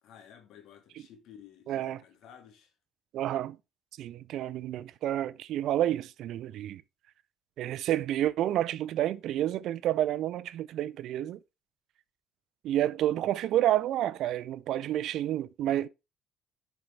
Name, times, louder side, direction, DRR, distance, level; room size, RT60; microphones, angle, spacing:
voice 1, 0.0-2.7, left 8 dB, 70° left, 1.9 m, -53 dB
voice 2, 1.7-2.0 3.1-3.6 4.0-6.8 7.6-11.4 12.6-15.9, right 12 dB, 70° right, 0.4 m, -29 dB
10.5 x 4.6 x 3.4 m
supercardioid pair, 70°, 0 cm